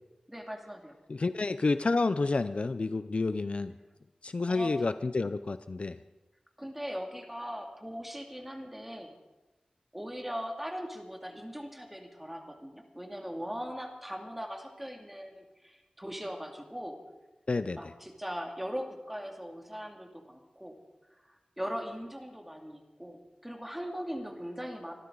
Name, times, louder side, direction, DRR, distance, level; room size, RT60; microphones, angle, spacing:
voice 1, 0.3-0.9 4.5-4.7 6.6-9.1 9.9-17.0 17.8-20.7 21.1-24.9, equal, 5° right, 2 dB, 2.3 m, -40 dB
voice 2, 1.1-3.7 4.2-6.0 17.5-17.8, left 3 dB, 55° left, 12 dB, 0.5 m, -29 dB
25.0 x 12.5 x 3.9 m, 1.1 s
wide cardioid pair, 90°, 2 cm